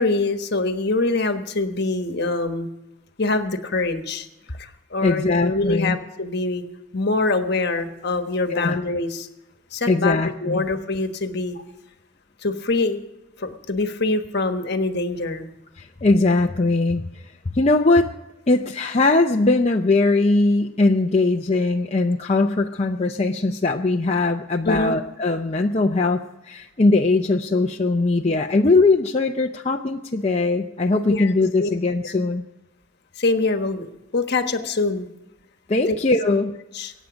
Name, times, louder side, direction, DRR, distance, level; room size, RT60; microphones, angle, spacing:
voice 1, 0.0-2.7 3.2-4.3 4.6-6.6 6.9-9.3 9.7-11.6 12.4-13.0 13.4-15.5 24.6-25.0 31.1-31.3 31.6-31.7 32.0-32.1 33.2-35.1 35.9-36.0 36.2-36.4 36.7-36.9, left 3 dB, 50° left, 7 dB, 1.3 m, -24 dB
voice 2, 5.0-6.0 8.5-8.8 9.9-10.7 15.8-18.1 18.5-32.4 35.7-36.5, left 2 dB, 30° left, 2 dB, 0.6 m, -20 dB
22.5 x 9.2 x 5.1 m, 0.99 s
head